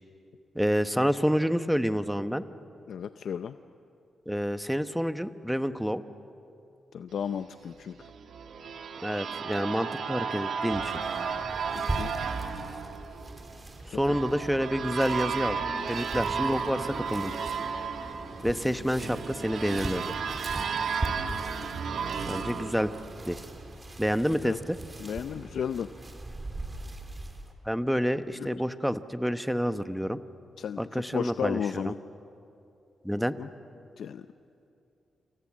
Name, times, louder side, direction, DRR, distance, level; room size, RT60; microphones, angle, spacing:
voice 1, 0.5-2.4 4.3-6.0 9.0-10.9 13.9-15.6 15.9-17.3 18.4-20.0 22.3-22.9 23.3-23.4 24.0-24.8 27.7-30.2 30.8-31.9 33.0-33.4, equal, ahead, 10 dB, 1.0 m, -28 dB
voice 2, 2.9-3.6 6.9-8.1 11.7-12.1 13.9-14.2 24.4-24.6 25.0-25.9 28.4-28.5 30.6-32.0 33.4-33.5 34.0-34.3, left 8 dB, 75° left, 10 dB, 0.6 m, -34 dB
sound 1, 8.0-23.7, right 6 dB, 75° right, 1.9 m, -34 dB
sound 2, 10.9-27.5, right 2 dB, 25° right, 3.0 m, -40 dB
sound 3, 14.4-23.4, left 3 dB, 35° left, 6.0 m, -47 dB
29.0 x 27.5 x 7.5 m, 2.7 s
cardioid pair, 95°, 0 cm